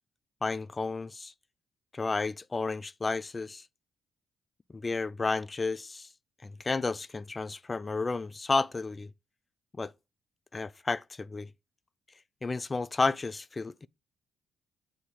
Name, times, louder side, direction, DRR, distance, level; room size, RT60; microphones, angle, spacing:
voice 1, 0.4-1.3 1.9-3.6 4.7-6.1 6.4-9.1 9.8-9.9 10.5-11.5 12.4-13.9, left 3 dB, 25° left, 0.3 m, -32 dB
8.5 x 2.8 x 4.7 m
cardioid pair, 90°, 0 cm